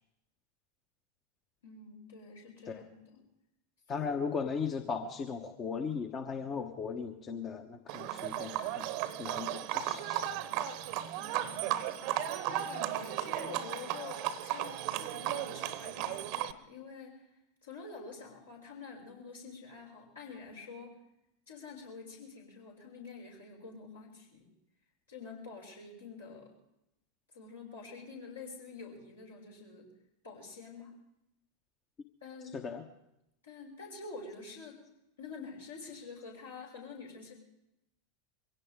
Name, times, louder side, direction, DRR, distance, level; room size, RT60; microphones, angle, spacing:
voice 1, 1.6-3.2 3.9-4.1 11.2-17.2 17.6-20.9 21.5-24.5 25.1-26.5 27.3-29.9 30.2-30.9 32.2-32.6 33.4-34.8 35.2-37.3, left 4 dB, 75° left, -2 dB, 6.1 m, -48 dB
voice 2, 3.9-8.9 9.2-10.2 32.5-32.8, left 5 dB, 30° left, 7 dB, 1.1 m, -37 dB
Livestock farm animals working animals, 7.9-16.5, right 12 dB, 50° right, 0.9 m, -35 dB
23.0 x 17.0 x 3.6 m, 0.85 s
figure-of-eight pair, 85°, 0 cm